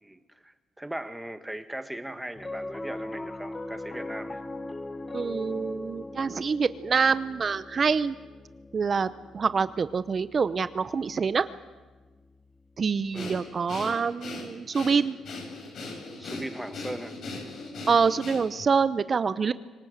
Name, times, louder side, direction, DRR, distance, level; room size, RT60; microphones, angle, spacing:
voice 1, 0.0-4.4 13.1-13.4 16.2-17.2, right 1 dB, 5° right, 9 dB, 1.7 m, -38 dB
Piano, 2.4-12.9, left 2 dB, 25° left, 1.2 m, -41 dB
voice 2, 5.1-8.1 8.7-9.1 9.3-11.5 12.8-15.2 17.9-19.5, right 5 dB, 40° right, 14 dB, 0.7 m, -26 dB
Breathing, 13.1-18.7, left 3 dB, 65° left, 8.0 m, -39 dB
25.0 x 19.0 x 8.0 m, 1.3 s
cardioid pair, 90°, 0 cm